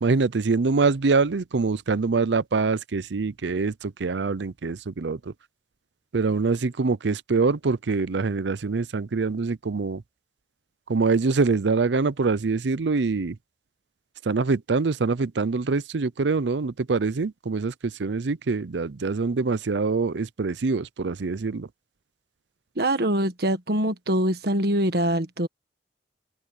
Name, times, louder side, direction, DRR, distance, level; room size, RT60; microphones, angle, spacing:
voice 1, 0.0-5.3 6.1-10.0 10.9-13.4 14.2-21.7, right 4 dB, 80° right, 0.6 m, -24 dB
voice 2, 22.7-25.5, right 1 dB, 60° right, 1.6 m, -24 dB
open air
head